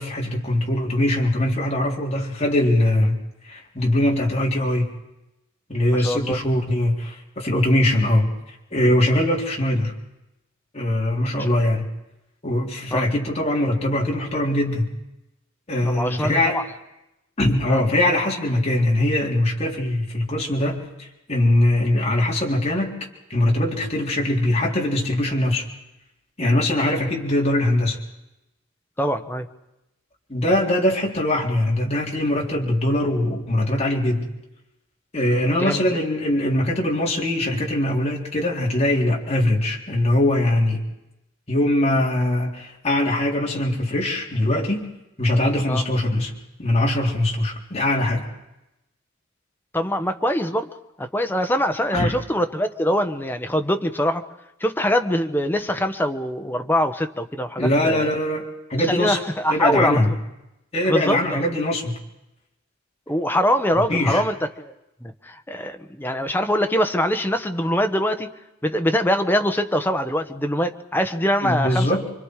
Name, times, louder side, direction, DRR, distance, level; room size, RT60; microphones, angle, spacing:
voice 1, 0.0-3.2 3.4-4.9 5.7-8.3 8.7-10.0 10.7-11.8 12.4-14.9 15.7-16.6 17.4-23.0 23.3-25.7 26.4-28.0 30.3-34.3 35.1-40.8 41.5-44.9 45.2-46.3 46.6-48.3 51.9-52.1 57.6-59.2 59.5-60.1 60.7-61.9 63.9-64.2 71.4-72.1, left 1 dB, 30° left, -2 dB, 4.1 m, -21 dB
voice 2, 5.9-6.4 11.3-11.6 12.9-13.1 15.8-16.6 17.7-17.8 29.0-29.5 35.6-36.0 45.7-45.8 49.7-50.7 51.0-54.2 54.6-58.1 58.9-60.1 60.8-61.4 63.1-64.7 65.0-68.3 68.6-71.9, equal, 10° left, 6 dB, 1.2 m, -23 dB
28.5 x 24.5 x 5.0 m, 0.93 s
head